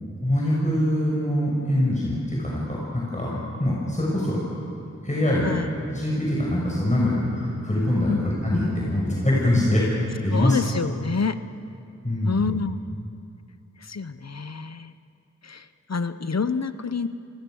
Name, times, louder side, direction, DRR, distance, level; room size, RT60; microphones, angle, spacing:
voice 1, 0.2-4.4 5.0-5.6 5.9-9.8 10.2-10.6 12.0-12.5, left 1 dB, 25° left, -5 dB, 6.2 m, -23 dB
voice 2, 10.3-11.4 12.2-13.0 13.8-14.9 15.4-17.1, left 5 dB, 60° left, 12 dB, 1.0 m, -28 dB
29.0 x 22.0 x 6.5 m, 2.6 s
wide cardioid pair, 55°, 30 cm